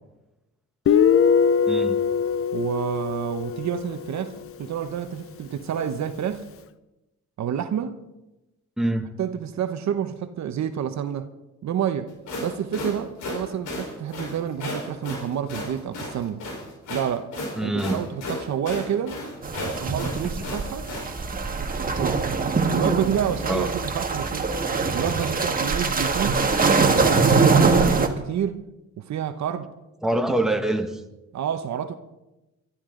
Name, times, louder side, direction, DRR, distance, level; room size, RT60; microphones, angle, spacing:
Guitar, 0.9-4.4, left 7 dB, 50° left, 0.7 m, -22 dB
voice 1, 1.7-2.0 8.8-9.1 17.6-18.1 23.5-23.7 30.0-31.0, right 1 dB, ahead, 4 dB, 1.6 m, -25 dB
voice 2, 2.5-6.4 7.4-8.0 9.2-11.3 11.6-12.1 12.4-16.4 16.9-17.3 17.6-19.2 19.7-20.9 21.8-22.2 22.7-24.5 24.9-26.5 26.8-28.6 29.0-29.7 30.1-30.3 31.3-31.9, right 9 dB, 65° right, 9 dB, 1.1 m, -29 dB
sound 1, 12.1-21.1, left 2 dB, 85° left, 4.6 m, -34 dB
sound 2, 19.4-28.1, right 4 dB, 30° right, 1.7 m, -22 dB
23.5 x 12.5 x 3.9 m, 0.98 s
cardioid pair, 90°, 30 cm